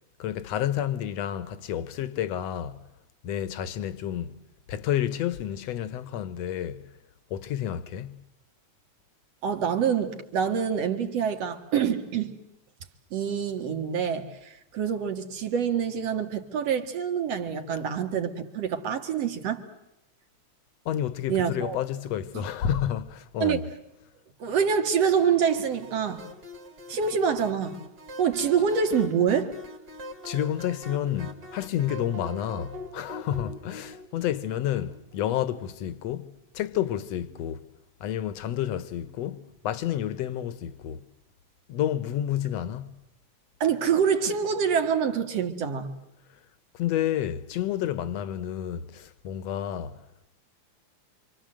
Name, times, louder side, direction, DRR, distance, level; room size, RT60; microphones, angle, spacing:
voice 1, 0.2-2.8 3.2-4.4 4.7-6.8 7.3-8.2 20.9-23.7 30.2-36.3 36.5-37.6 38.0-41.0 41.7-42.9 46.7-50.0, left 10 dB, 65° left, 2.1 m, -30 dB
voice 2, 9.4-12.3 13.1-19.6 21.3-21.8 22.3-22.4 23.4-23.7 24.4-26.2 26.9-27.8 28.2-29.6 43.6-45.9, right 7 dB, 60° right, 2.9 m, -26 dB
sound 1, 25.0-35.6, left 1 dB, 30° right, 3.3 m, -43 dB
28.0 x 26.0 x 7.7 m
omnidirectional pair, 3.4 m